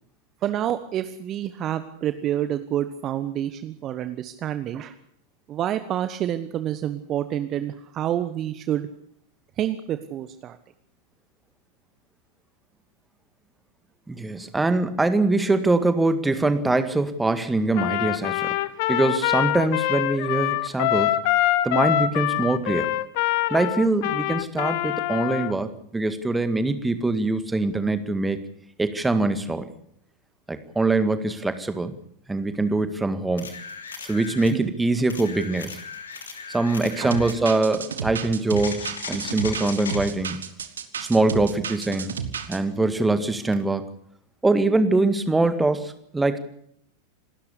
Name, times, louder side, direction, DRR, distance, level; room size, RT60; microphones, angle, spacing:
voice 1, 0.4-4.9 5.5-8.9 9.6-10.6 34.5-34.7 37.0-37.1, right 11 dB, 30° right, 11 dB, 1.1 m, -28 dB
voice 2, 14.1-18.6 18.9-21.1 21.6-22.9 23.5-28.4 28.8-29.7 30.5-31.9 32.3-33.5 34.0-35.8 36.5-40.4 41.0-42.2 42.5-43.8 44.4-46.4, right 2 dB, 10° right, 10 dB, 1.9 m, -23 dB
Trumpet, 17.7-25.5, left 14 dB, 50° left, 1.1 m, -24 dB
sound 1, 33.4-34.6 35.1-37.4 38.5-40.1 43.5-43.6, left 5 dB, 70° left, 3.0 m, -37 dB
sound 2, 37.1-42.6, right 7 dB, 70° right, 1.7 m, -32 dB
27.0 x 13.0 x 8.4 m, 0.69 s
figure-of-eight pair, 90°, 0 cm